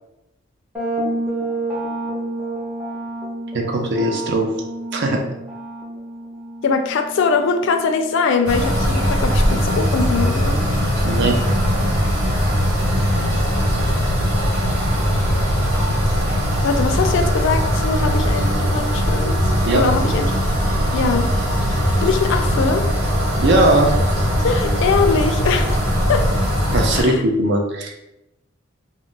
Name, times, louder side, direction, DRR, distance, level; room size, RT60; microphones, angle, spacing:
sound 1, 0.7-8.4, right 2 dB, 5° right, 0.6 m, -29 dB
voice 1, 3.5-4.5 4.9-5.2 11.0-11.4 19.6-19.8 23.4-23.9 26.7-27.9, right 1 dB, 60° right, 3 dB, 0.5 m, -19 dB
voice 2, 6.6-10.6 16.6-19.4 19.7-20.3 20.9-21.3 22.0-22.8 24.4-26.3 27.0-27.2, left 4 dB, 65° left, 6 dB, 0.3 m, -21 dB
sound 2, 8.4-27.0, equal, 90° right, 1.0 m, -20 dB
2.3 x 2.0 x 3.7 m, 0.90 s
head